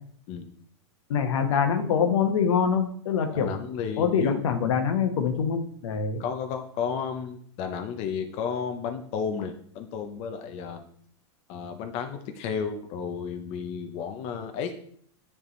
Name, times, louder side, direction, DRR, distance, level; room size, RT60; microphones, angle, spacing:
voice 1, 1.1-3.5 4.0-6.2, left 6 dB, 80° left, 6 dB, 1.1 m, -24 dB
voice 2, 3.3-4.4 6.2-10.9 11.5-14.7, left 6 dB, 40° left, 6 dB, 0.6 m, -32 dB
9.7 x 3.5 x 3.2 m, 0.62 s
supercardioid pair, 140°, 15 cm